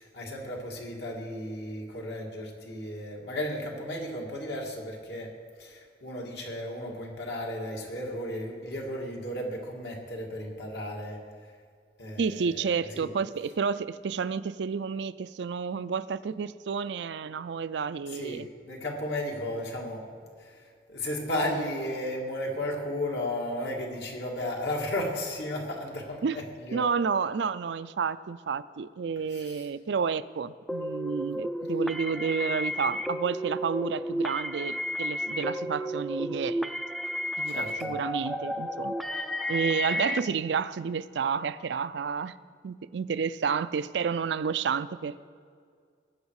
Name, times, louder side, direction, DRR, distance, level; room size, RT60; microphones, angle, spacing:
voice 1, 0.0-11.5 12.0-13.1 18.1-20.1 20.4-26.9 29.3-29.7 37.5-38.0, left 1 dB, 75° left, -1 dB, 2.3 m, -34 dB
voice 2, 12.2-18.5 26.2-26.4 26.7-36.6 37.4-38.9 39.5-42.4 42.6-45.2, right 6 dB, 85° right, 15 dB, 0.4 m, -30 dB
sound 1, 30.7-40.2, equal, ahead, 0.3 m, -32 dB
19.5 x 8.1 x 4.8 m, 2.1 s
head